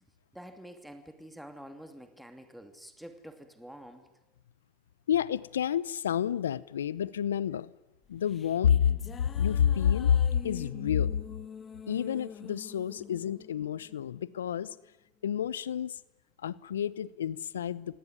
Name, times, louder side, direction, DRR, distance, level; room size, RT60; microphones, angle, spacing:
voice 1, 0.3-4.1, equal, ahead, 7 dB, 2.7 m, -48 dB
voice 2, 5.1-7.7 8.1-8.9 9.3-10.2 10.4-11.2 11.9-14.7 15.2-16.0 16.4-18.0, left 9 dB, 80° left, 21 dB, 0.8 m, -29 dB
sound 1, 8.0-14.6, left 7 dB, 30° left, 1.8 m, -46 dB
26.0 x 18.0 x 9.6 m, 0.97 s
hypercardioid pair, 85°, 0 cm